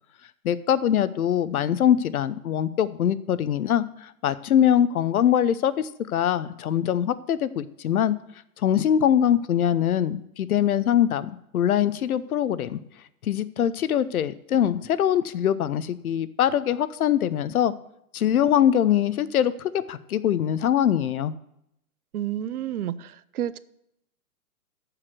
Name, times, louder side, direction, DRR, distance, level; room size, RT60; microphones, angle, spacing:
voice 1, 0.4-8.2 8.6-12.8 13.2-17.7 18.1-21.3, left 10 dB, 70° left, 15 dB, 0.8 m, -23 dB
voice 2, 22.1-23.6, right 11 dB, 75° right, 16 dB, 0.7 m, -30 dB
14.0 x 5.0 x 6.2 m, 0.78 s
hypercardioid pair, 145°, 44 cm